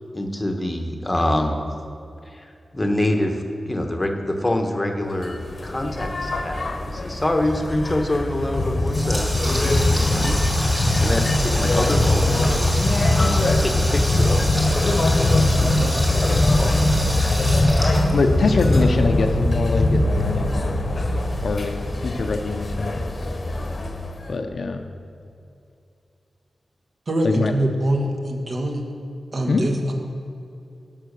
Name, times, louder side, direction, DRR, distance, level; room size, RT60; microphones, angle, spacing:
voice 1, 0.1-1.6 2.2-9.3 9.6-10.4 11.0-12.6 13.2-14.6 15.1-15.3 15.6-16.8 17.1-17.5 18.4-18.5, left 1 dB, 15° left, 3 dB, 1.1 m, -26 dB
sound 1, 5.2-24.3, left 2 dB, 35° left, 1.0 m, -21 dB
Water tap faucet, 8.5-18.7, equal, 10° right, 2.3 m, -29 dB
voice 2, 18.1-20.8 21.4-21.7 22.0-23.0 24.3-24.9 27.2-27.5 29.5-29.6, left 3 dB, 60° left, 5 dB, 0.6 m, -23 dB
voice 3, 27.1-28.8 29.3-29.9, right 1 dB, 45° right, 2 dB, 1.3 m, -23 dB
12.0 x 5.7 x 6.6 m, 2.6 s
wide cardioid pair, 140°, 0 cm